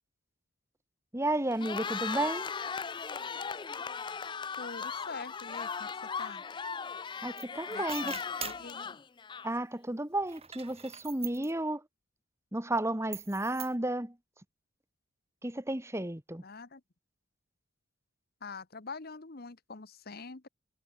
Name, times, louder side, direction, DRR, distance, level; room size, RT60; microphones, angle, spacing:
voice 1, 1.1-2.5 7.2-8.1 9.4-11.8 12.5-14.1 15.4-16.4, right 1 dB, 15° right, 1.4 m, -32 dB
Cheering, 1.5-9.7, left 6 dB, 25° left, 0.4 m, -38 dB
voice 2, 4.6-6.4 7.7-9.0 16.4-16.8 18.4-20.5, left 4 dB, 50° left, 1.1 m, -45 dB
sound 1, 7.4-7.5 7.7-8.7 10.2-11.5 13.1-13.7, right 9 dB, 30° right, 3.7 m, -43 dB
head